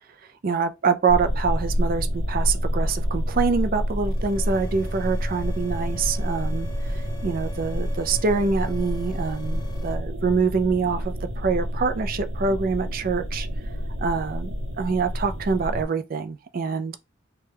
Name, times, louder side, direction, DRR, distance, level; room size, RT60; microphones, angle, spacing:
voice 1, 0.4-6.7 7.2-13.5 14.0-17.0, right 5 dB, 45° right, 0.4 m, -25 dB
sound 1, 1.1-15.8, equal, 90° right, 0.7 m, -28 dB
sound 2, 4.0-9.9, left 2 dB, 15° left, 0.7 m, -43 dB
3.2 x 2.2 x 3.3 m
head